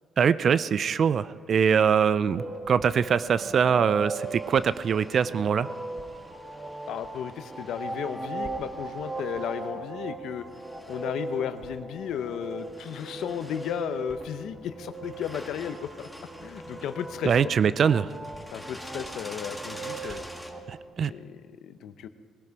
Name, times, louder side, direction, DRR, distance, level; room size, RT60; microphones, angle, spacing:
voice 1, 0.2-5.7 17.2-18.1 20.0-20.2 20.7-21.1, right 7 dB, 55° right, 16 dB, 0.4 m, -23 dB
sound 1, 2.0-20.5, equal, ahead, 1.7 m, -48 dB
sound 2, 2.4-20.7, right 2 dB, 15° right, 2.0 m, -39 dB
voice 2, 6.9-10.4 10.9-16.1 16.4-17.4 18.5-20.3 21.1-22.1, left 9 dB, 80° left, 11 dB, 0.7 m, -34 dB
19.5 x 12.5 x 4.7 m, 2.1 s
cardioid pair, 90°, 0 cm